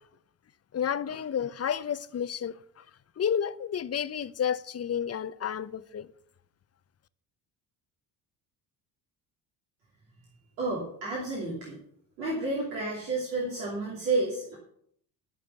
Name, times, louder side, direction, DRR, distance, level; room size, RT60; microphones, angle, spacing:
voice 1, 0.7-2.8 3.2-6.1, left 8 dB, 30° left, 0.7 m, -31 dB
voice 2, 10.6-11.8 12.2-14.6, right 2 dB, 85° right, 2.9 m, -31 dB
13.5 x 6.1 x 7.0 m
hypercardioid pair, 50°, 50 cm